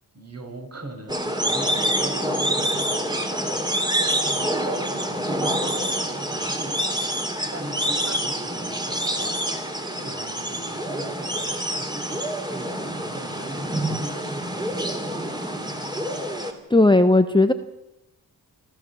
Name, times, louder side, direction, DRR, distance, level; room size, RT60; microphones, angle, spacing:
voice 1, 0.1-3.8 4.3-15.7, right 2 dB, 40° right, 3 dB, 6.2 m, -41 dB
sound 1, 1.1-16.5, right 1 dB, 10° right, 3.5 m, -26 dB
voice 2, 16.7-17.5, left 2 dB, 10° left, 8 dB, 1.0 m, -16 dB
27.0 x 14.0 x 7.2 m, 0.95 s
cardioid pair, 70°, 40 cm